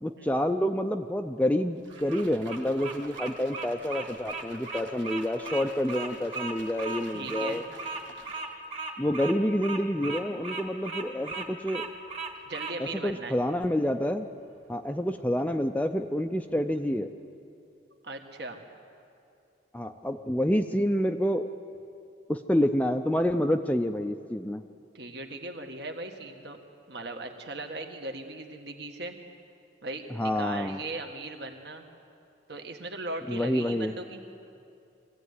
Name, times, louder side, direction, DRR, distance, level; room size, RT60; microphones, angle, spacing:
voice 1, 0.0-7.6 9.0-11.9 12.8-14.3 14.7-17.1 19.7-21.5 22.3-24.6 30.1-30.8 33.3-33.9, equal, 10° left, 6 dB, 0.5 m, -28 dB
sound 1, 1.8-8.7, right 4 dB, 80° right, 1.6 m, -51 dB
Bird vocalization bird call bird song, 1.9-12.8, right 3 dB, 30° right, 1.9 m, -37 dB
voice 2, 7.1-7.6 12.5-13.4 18.0-18.6 24.9-26.6 26.9-29.1 29.8-31.8 32.5-34.2, right 2 dB, 60° right, 4 dB, 1.8 m, -38 dB
23.0 x 16.0 x 9.7 m, 2.6 s
head